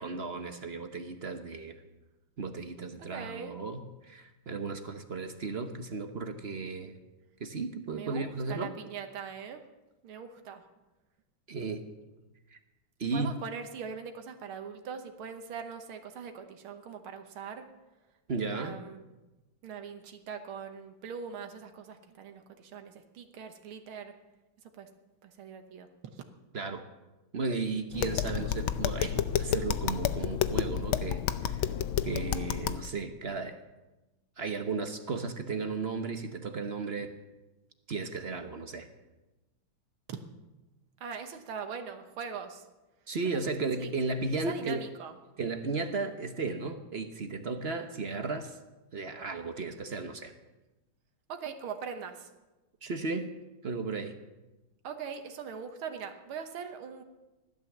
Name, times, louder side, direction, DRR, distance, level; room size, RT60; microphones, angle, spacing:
voice 1, 0.0-1.8 2.4-6.9 7.4-8.7 11.5-11.8 13.0-13.3 18.3-18.8 26.5-26.8 27.3-29.1 29.4-31.7 32.0-33.6 34.4-37.1 37.9-38.9 43.1-44.9 45.4-48.6 48.9-50.3 52.8-53.3 53.6-54.1, right 4 dB, 45° right, 7 dB, 0.9 m, -35 dB
voice 2, 3.0-3.6 7.9-9.6 10.0-10.6 13.1-17.7 18.5-19.1 19.6-24.1 24.7-24.9 25.2-26.2 40.1-40.2 41.0-42.7 43.3-43.5 43.8-43.9 44.5-45.2 51.3-52.3 54.8-57.0, right 6 dB, 80° right, 6 dB, 2.0 m, -41 dB
Tap, 27.9-32.9, left 10 dB, 80° left, 1.5 m, -30 dB
15.5 x 12.0 x 7.3 m, 1.1 s
omnidirectional pair, 2.3 m